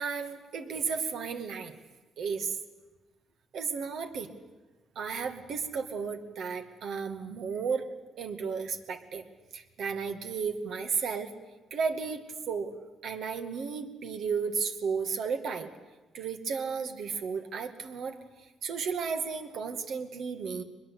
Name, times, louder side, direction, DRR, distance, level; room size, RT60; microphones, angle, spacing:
voice 1, 0.0-1.8 2.2-2.5 3.5-4.3 5.0-7.9 8.2-9.2 9.5-11.3 11.7-12.7 13.0-15.7 16.1-18.2 18.6-20.6, right 5 dB, 70° right, 7 dB, 2.2 m, -33 dB
22.5 x 21.5 x 8.5 m, 1.2 s
cardioid pair, 90°, 0 cm